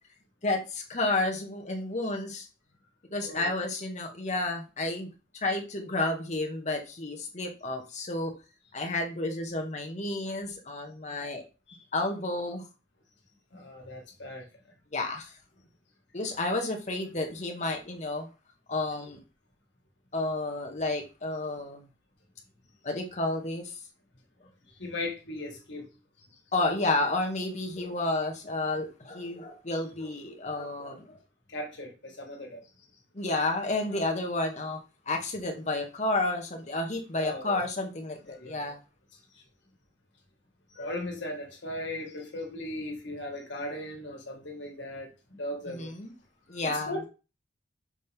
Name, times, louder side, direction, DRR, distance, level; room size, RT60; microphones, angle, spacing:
voice 1, 0.4-2.5 3.1-8.3 8.7-11.4 11.9-12.6 14.9-15.3 16.1-18.3 18.7-19.2 20.1-21.8 22.8-23.7 26.5-31.2 33.1-34.8 35.1-38.8 45.7-46.1 46.5-46.9, left 2 dB, 35° left, 3 dB, 1.3 m, -31 dB
voice 2, 13.5-14.5 24.8-25.9 31.5-32.6 37.2-37.6 38.3-38.7 39.3-39.4 40.7-45.9 46.6-47.1, left 1 dB, 70° left, 1 dB, 1.9 m, -38 dB
6.3 x 4.2 x 3.6 m, 0.31 s
head